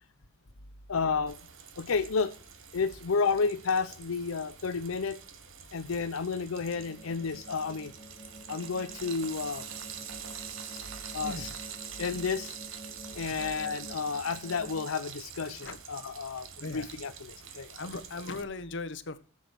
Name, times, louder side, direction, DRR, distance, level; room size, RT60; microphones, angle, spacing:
voice 1, 0.9-1.4 1.8-2.3 2.7-5.2 5.7-7.9 8.5-9.6 11.1-11.5 12.0-12.5 13.2-16.5 16.7-17.1 17.5-17.8, left 5 dB, 90° left, 9 dB, 0.6 m, -31 dB
Frying (food), 1.3-18.4, right 7 dB, 70° right, 1.6 m, -45 dB
sound 1, 6.7-14.9, equal, 30° left, 1.5 m, -50 dB
voice 2, 10.8-11.6 11.9-12.0 13.2-13.5 15.6-15.8 16.6-16.9 17.7-19.2, left 3 dB, 60° left, 12 dB, 1.1 m, -40 dB
14.0 x 7.2 x 6.2 m, 0.38 s
head